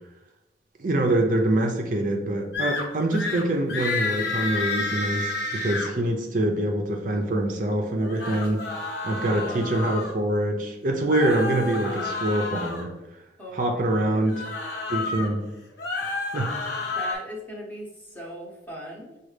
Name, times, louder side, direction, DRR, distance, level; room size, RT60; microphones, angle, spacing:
voice 1, 0.8-8.7 9.0-12.9 13.5-14.4 14.9-15.5 16.3-16.5, right 1 dB, 45° right, 2 dB, 0.5 m, -25 dB
sound 1, 2.5-2.8 3.1-3.4 3.7-5.9 8.0-10.1 11.1-12.8 14.2-15.3 15.7-17.1, left 3 dB, 70° left, 1.2 m, -30 dB
voice 2, 9.2-9.7 13.4-14.6 16.8-19.2, equal, 10° left, -3 dB, 0.8 m, -39 dB
6.0 x 2.4 x 3.2 m, 0.99 s
head